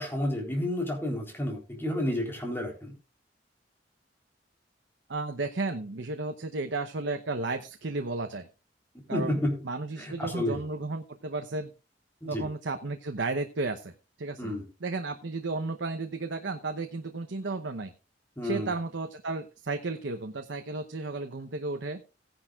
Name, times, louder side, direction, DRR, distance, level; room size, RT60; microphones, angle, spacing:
voice 1, 0.0-2.9 9.1-9.6 10.0-10.6 12.2-12.5 14.4-14.6 18.4-18.7, left 1 dB, 10° left, 1 dB, 3.6 m, -30 dB
voice 2, 5.1-8.5 9.1-9.4 9.6-11.7 12.3-13.9 14.2-14.5 14.8-17.9 18.4-22.0, right 3 dB, 80° right, 6 dB, 0.9 m, -33 dB
17.0 x 10.5 x 2.4 m, 0.30 s
head